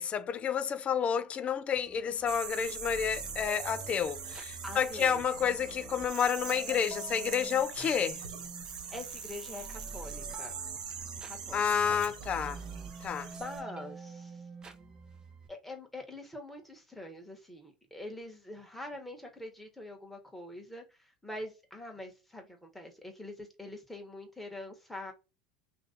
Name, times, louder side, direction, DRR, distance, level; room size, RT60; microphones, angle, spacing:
voice 1, 0.0-8.2 11.5-12.6 13.0-13.3, left 7 dB, 30° left, 0.4 m, -30 dB
sound 1, 1.8-15.5, right 4 dB, 20° right, 0.7 m, -48 dB
sound 2, 2.3-13.6, right 6 dB, 90° right, 0.7 m, -42 dB
voice 2, 4.6-5.2 8.9-10.6 11.2-11.6 13.4-14.4 15.5-25.1, left 1 dB, 5° left, 1.2 m, -44 dB
2.9 x 2.7 x 3.8 m
hypercardioid pair, 95°, 4 cm